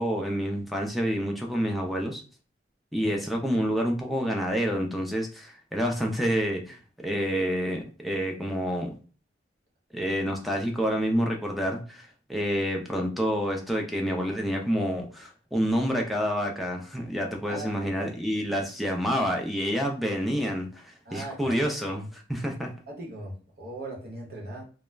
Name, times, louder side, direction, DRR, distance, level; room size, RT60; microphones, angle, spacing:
voice 1, 0.0-2.2 2.9-8.9 9.9-22.7, equal, ahead, 0.4 m, -28 dB
voice 2, 17.5-18.1 21.1-21.6 22.9-24.6, right 1 dB, 55° right, 0.9 m, -39 dB
2.3 x 2.0 x 3.2 m
head